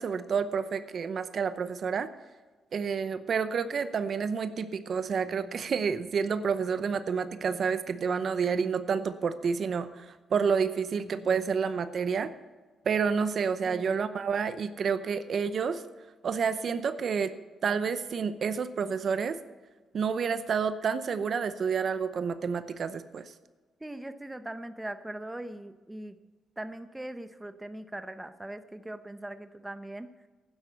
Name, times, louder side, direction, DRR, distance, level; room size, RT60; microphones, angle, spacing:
voice 1, 0.0-2.1 2.7-12.3 12.9-15.8 16.2-17.3 17.6-19.4 19.9-23.3, right 6 dB, 55° right, 12 dB, 0.7 m, -29 dB
voice 2, 13.6-14.0 23.8-26.2 26.6-30.1, right 1 dB, 10° right, 10 dB, 0.9 m, -40 dB
11.5 x 9.8 x 6.9 m, 1.3 s
cardioid pair, 90°, 0 cm